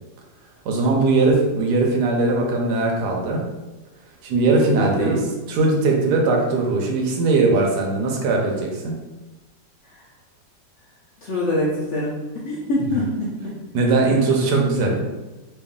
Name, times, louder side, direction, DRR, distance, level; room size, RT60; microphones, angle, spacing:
voice 1, 0.6-3.4 4.2-5.2 5.5-9.0 13.7-15.0, right 3 dB, 70° right, 0 dB, 1.2 m, -20 dB
voice 2, 4.8-5.2 9.9-10.0 11.2-12.2 12.4-13.6, left 1 dB, 60° left, -7 dB, 0.8 m, -25 dB
3.1 x 2.6 x 3.6 m, 1.1 s
omnidirectional pair, 1.9 m